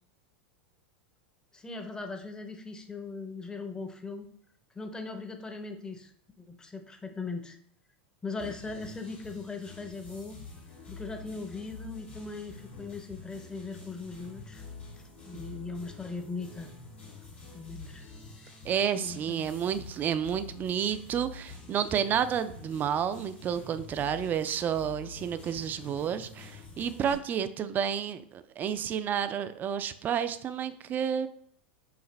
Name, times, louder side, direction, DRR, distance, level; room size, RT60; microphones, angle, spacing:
voice 1, 1.5-4.3 4.7-6.1 6.4-7.6 8.2-10.4 10.9-14.6 15.2-16.7 17.5-18.1 18.4-18.6 19.0-19.6, left 3 dB, 10° left, 5 dB, 0.6 m, -39 dB
sound 1, 8.4-27.1, left 4 dB, 80° left, 1.7 m, -47 dB
voice 2, 18.6-31.3, right 8 dB, 30° right, 12 dB, 0.3 m, -30 dB
4.8 x 2.5 x 3.2 m, 0.65 s
hypercardioid pair, 95°, 6 cm